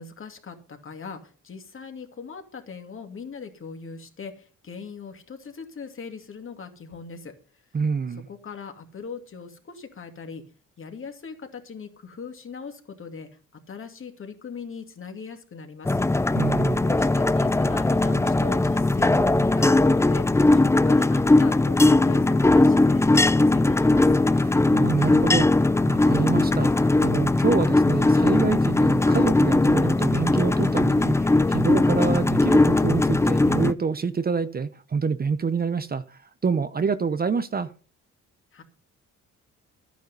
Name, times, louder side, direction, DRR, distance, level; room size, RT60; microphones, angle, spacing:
voice 1, 0.0-7.3 8.3-10.4 10.8-16.0 16.8-24.0 38.5-38.6, left 5 dB, 45° left, 2.5 m, -40 dB
voice 2, 7.7-8.3 16.3-16.8 24.3-37.7, right 5 dB, 30° right, 0.8 m, -27 dB
sound 1, 15.8-33.7, left 2 dB, 10° left, 0.5 m, -19 dB
11.5 x 9.4 x 5.4 m
cardioid pair, 90°, 30 cm